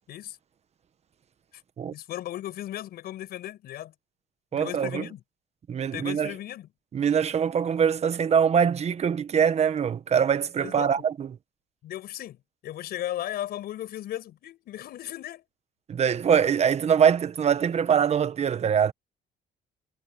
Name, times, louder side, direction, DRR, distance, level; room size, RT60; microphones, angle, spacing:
voice 1, 1.9-3.9 4.5-5.2 5.9-6.7 10.6-10.9 11.8-12.4 12.6-15.4, left 13 dB, 70° left, 5.4 m, -36 dB
voice 2, 4.5-5.0 5.7-6.3 6.9-11.4 15.9-18.9, right 7 dB, 40° right, 1.2 m, -23 dB
cardioid pair, 110°, 17 cm